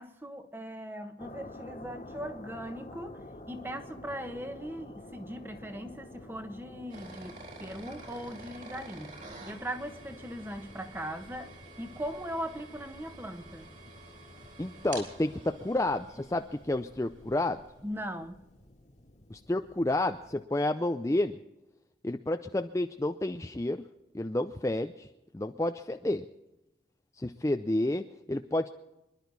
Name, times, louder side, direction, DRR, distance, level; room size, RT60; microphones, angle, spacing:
voice 1, 0.0-3.2 3.5-9.1 9.4-13.7 17.8-18.4, equal, 10° right, 7 dB, 1.2 m, -39 dB
sound 1, 1.2-20.4, left 1 dB, 40° left, 1.7 m, -50 dB
sound 2, 6.9-17.7, right 2 dB, 45° right, 3.8 m, -49 dB
voice 2, 14.6-17.6 19.3-21.4 22.0-23.9 24.1-25.1 25.3-26.3 27.2-28.8, left 1 dB, 15° left, 7 dB, 0.5 m, -30 dB
26.0 x 11.5 x 4.0 m, 0.95 s
head